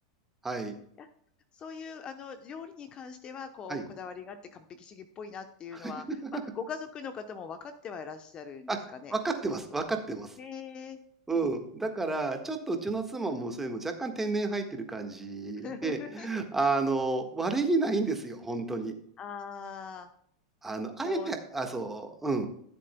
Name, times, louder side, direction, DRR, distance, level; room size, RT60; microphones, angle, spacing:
voice 1, 0.4-0.7 3.7-3.8 5.8-5.9 8.7-8.8 9.1-10.4 11.3-18.9 20.6-22.5, right 3 dB, 10° right, 5 dB, 1.5 m, -31 dB
voice 2, 1.5-9.1 10.4-11.0 15.6-16.4 19.2-20.1 21.0-21.3, left 6 dB, 30° left, 9 dB, 0.8 m, -42 dB
14.0 x 7.6 x 2.2 m, 0.67 s
hypercardioid pair, 120°, 3 cm